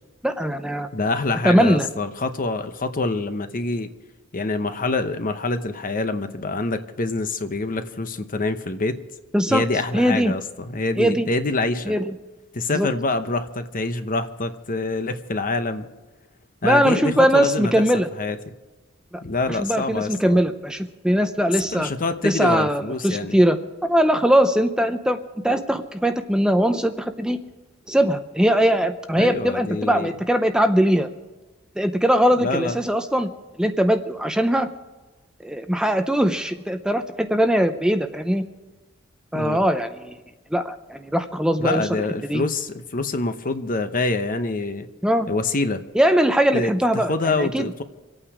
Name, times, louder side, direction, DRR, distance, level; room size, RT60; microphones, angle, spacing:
voice 1, 0.2-0.9 1.4-1.9 9.3-9.6 9.9-10.3 11.0-11.3 11.9-12.1 12.7-12.9 16.6-18.1 19.1-19.2 19.5-21.9 22.2-23.6 23.9-25.2 25.4-27.4 27.9-31.1 31.8-33.3 33.6-34.7 35.4-38.4 39.3-40.2 40.5-41.9 42.3-42.4 45.0-45.3 45.9-47.6, equal, 5° right, 8 dB, 0.5 m, -20 dB
voice 2, 0.9-3.9 4.3-9.0 9.5-11.9 12.5-15.9 16.6-17.8 18.2-18.4 19.2-20.4 21.6-23.3 29.2-30.1 32.4-32.8 39.3-39.6 41.6-44.9 45.3-45.8 46.5-47.8, left 3 dB, 40° left, 9 dB, 0.9 m, -26 dB
26.0 x 8.9 x 4.9 m, 1.2 s
head